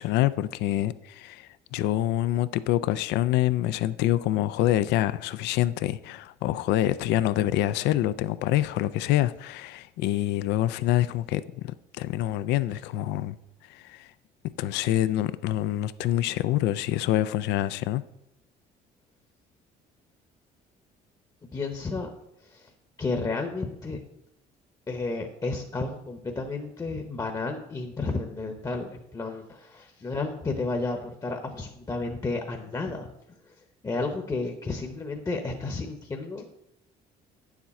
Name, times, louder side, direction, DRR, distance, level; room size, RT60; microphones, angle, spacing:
voice 1, 0.0-13.4 13.7-14.1 14.6-18.0, left 14 dB, 90° left, 0.4 m, -26 dB
voice 2, 21.5-22.1 22.4-22.7 23.0-24.0 24.9-33.1 33.4-36.4, left 3 dB, 20° left, 0.9 m, -32 dB
9.2 x 7.2 x 4.2 m
cardioid pair, 110°, 17 cm